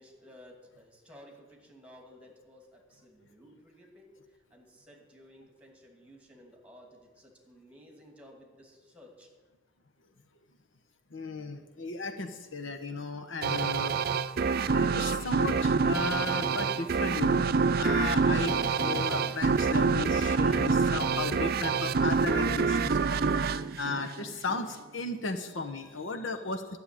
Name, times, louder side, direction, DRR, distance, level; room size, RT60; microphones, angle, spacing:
voice 1, 0.0-4.1 4.5-9.3, equal, 5° right, 1 dB, 2.5 m, -55 dB
voice 2, 11.1-14.0 14.7-17.4 17.8-26.6, left 3 dB, 75° left, 6 dB, 1.1 m, -35 dB
sound 1, 13.4-24.6, right 5 dB, 50° right, 0.5 m, -27 dB
12.5 x 6.9 x 9.8 m, 1.3 s
head